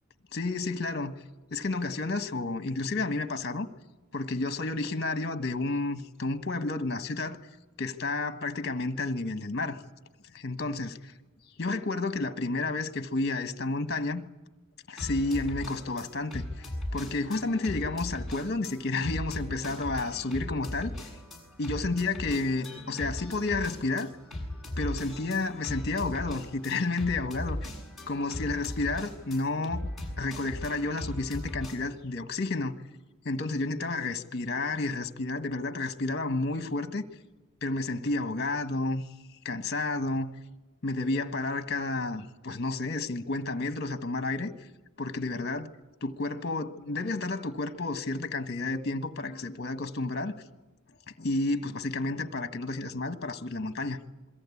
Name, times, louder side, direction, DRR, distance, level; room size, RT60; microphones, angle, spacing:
voice 1, 0.3-1.2 1.5-3.7 4.1-7.4 7.8-9.8 10.3-11.1 11.6-14.2 14.9-16.7 16.9-21.1 21.6-24.1 24.8-27.7 28.1-29.9 30.2-32.8 33.2-37.0 37.6-39.0 39.4-40.3 40.8-44.5 45.0-45.7 46.0-50.3 51.2-54.0, left 3 dB, 50° left, 1.4 m, -31 dB
sound 1, 15.0-31.8, left 1 dB, ahead, 7.5 m, -38 dB
27.5 x 22.5 x 8.6 m
head